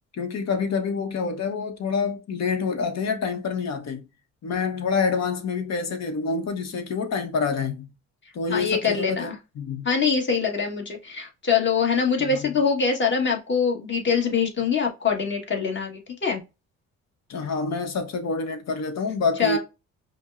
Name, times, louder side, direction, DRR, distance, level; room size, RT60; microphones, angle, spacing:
voice 1, 0.2-4.0 4.4-7.9 8.3-9.3 9.6-9.9 12.2-12.6 17.3-19.6, left 5 dB, 60° left, 1.0 m, -27 dB
voice 2, 8.5-9.3 9.8-16.4 19.4-19.6, left 5 dB, 40° left, 1.5 m, -24 dB
5.1 x 2.1 x 2.5 m
cardioid pair, 90°, 30 cm